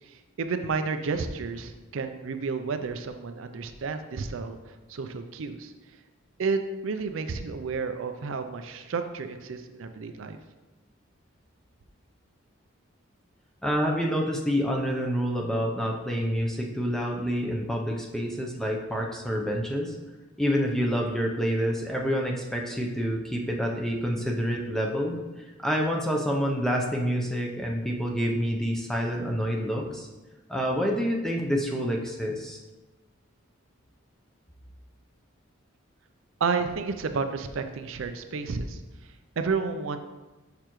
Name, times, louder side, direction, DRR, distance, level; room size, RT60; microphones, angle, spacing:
voice 1, 0.0-5.7 6.4-10.4 36.4-40.0, right 4 dB, 70° right, 8 dB, 0.4 m, -31 dB
voice 2, 13.6-20.0 20.4-30.1 30.5-32.6, equal, ahead, -1 dB, 0.6 m, -28 dB
6.7 x 5.7 x 3.0 m, 1.1 s
head